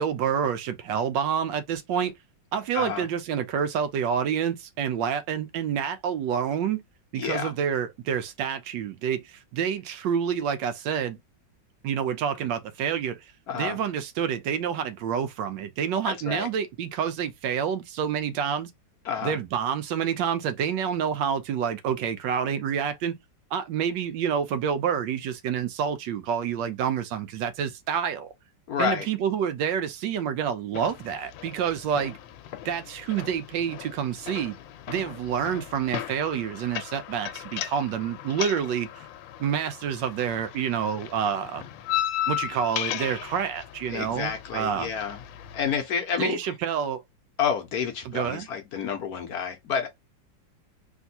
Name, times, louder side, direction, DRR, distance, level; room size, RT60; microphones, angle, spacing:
voice 1, 0.0-2.1 2.5-6.8 7.1-11.2 11.8-18.7 19.2-23.1 23.5-28.3 28.8-32.2 32.6-34.6 34.9-39.1 39.4-41.6 42.3-44.9 46.2-47.0 48.0-48.5, right 8 dB, 80° right, 1.2 m, -28 dB
voice 2, 2.7-3.1 7.2-7.5 13.5-13.8 16.1-16.5 19.0-19.4 28.7-29.1 43.9-45.2 45.5-46.4 47.4-49.9, left 7 dB, 65° left, 1.0 m, -29 dB
sound 1, 30.7-45.7, left 12 dB, 85° left, 1.3 m, -36 dB
3.5 x 2.6 x 2.6 m
omnidirectional pair, 2.0 m